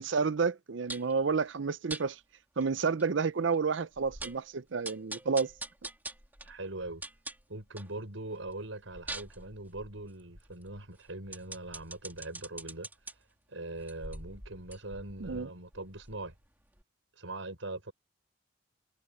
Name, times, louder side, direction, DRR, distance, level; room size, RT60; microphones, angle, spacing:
voice 1, 0.0-2.2 2.6-5.5 15.2-15.5, right 5 dB, 70° right, 0.6 m, -30 dB
sound 1, 0.9-1.2 1.9-2.1 2.6-2.7 3.0-3.1 3.5-3.6 4.0-4.5 4.8-7.9 8.3-13.1 13.7-16.4 16.8-16.9, right 2 dB, 10° right, 2.7 m, -44 dB
voice 2, 6.4-7.0 7.5-12.9 13.5-16.3 17.2-17.9, right 2 dB, 90° right, 6.1 m, -41 dB
head